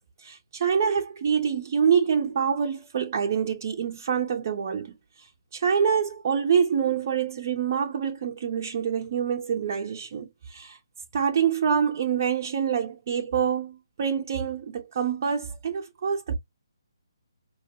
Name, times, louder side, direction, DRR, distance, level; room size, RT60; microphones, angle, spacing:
voice 1, 0.2-4.9 5.5-10.8 11.1-16.3, right 7 dB, 40° right, 0.6 m, -26 dB
4.7 x 2.1 x 2.8 m
figure-of-eight pair, 140°, 2 cm